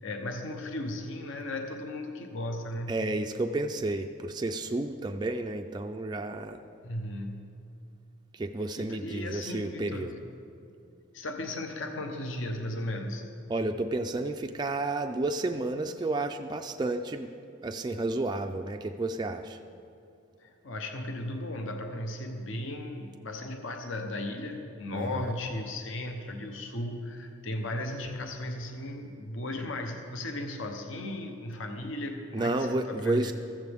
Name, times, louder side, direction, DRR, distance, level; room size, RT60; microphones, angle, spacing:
voice 1, 0.0-3.0 6.8-7.6 8.8-10.2 11.1-13.2 20.4-33.3, left 1 dB, 65° left, 5 dB, 0.9 m, -36 dB
voice 2, 2.9-6.6 8.3-10.2 13.5-17.3 17.6-19.6 24.9-25.3 32.3-33.3, right 2 dB, 20° right, 5 dB, 0.3 m, -31 dB
15.0 x 14.0 x 3.5 m, 2.5 s
head